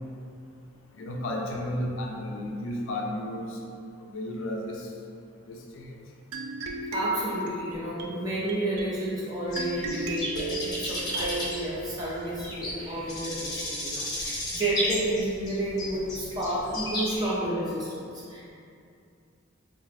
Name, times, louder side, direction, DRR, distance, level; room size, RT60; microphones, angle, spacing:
voice 1, 1.0-3.6 4.0-4.9 5.5-5.9, left 1 dB, 60° left, 0 dB, 0.3 m, -33 dB
sound 1, 6.3-11.6, right 2 dB, 75° right, 0.3 m, -36 dB
voice 2, 6.9-18.5, right 1 dB, 20° right, -8 dB, 0.6 m, -31 dB
sound 2, 9.5-17.3, left 1 dB, 20° left, 0.8 m, -33 dB
2.5 x 2.2 x 3.9 m, 2.5 s
head